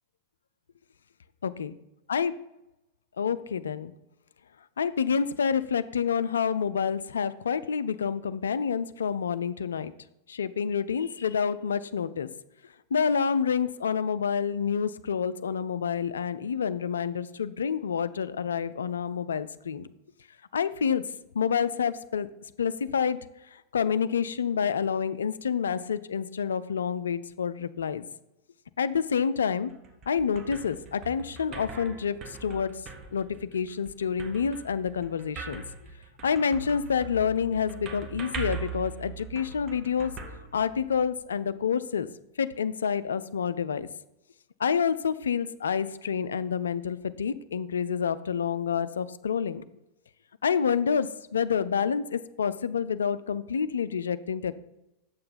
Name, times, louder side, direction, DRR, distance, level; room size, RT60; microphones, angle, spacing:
voice 1, 3.2-3.9 4.8-9.9 10.3-12.3 12.9-19.9 20.5-21.0 21.3-22.3 22.6-23.2 23.5-28.1 28.8-29.7 30.1-32.7 33.1-35.6 36.2-40.1 40.5-42.1 42.4-43.9 44.6-49.6 50.4-54.6, left 7 dB, 70° left, 15 dB, 0.3 m, -28 dB
sound 1, 29.7-41.2, right 6 dB, 30° right, 1.1 m, -41 dB
7.9 x 6.5 x 4.1 m, 0.93 s
figure-of-eight pair, 90°, 0 cm